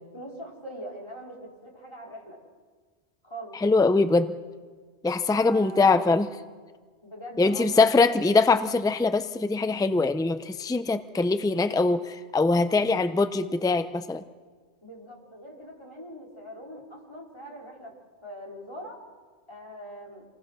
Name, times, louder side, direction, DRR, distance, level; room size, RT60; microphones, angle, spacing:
voice 1, 0.1-2.4 3.2-3.6 5.3-5.9 7.0-7.9 14.8-17.9 18.2-19.0 19.5-20.3, equal, 25° left, -2 dB, 4.1 m, -42 dB
voice 2, 3.6-4.3 5.0-6.3 7.4-14.2, left 3 dB, 5° left, 11 dB, 0.5 m, -22 dB
26.0 x 19.5 x 6.3 m, 1.5 s
omnidirectional pair, 1.1 m